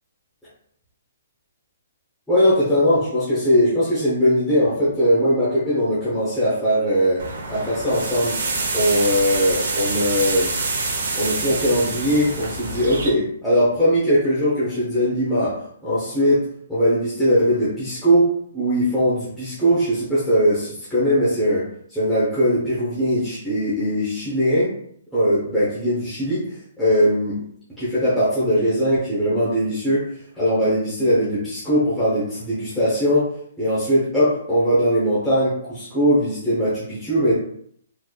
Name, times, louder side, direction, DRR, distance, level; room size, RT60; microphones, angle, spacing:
voice 1, 2.3-8.4 8.7-10.6 11.2-24.8 25.1-27.3 27.8-30.1 30.3-33.3 33.6-37.3, equal, ahead, -12 dB, 0.8 m, -20 dB
sound 1, 7.2-13.1, right 3 dB, 60° right, 0.8 m, -26 dB
3.8 x 3.1 x 2.3 m, 0.65 s
hypercardioid pair, 180°, 0 cm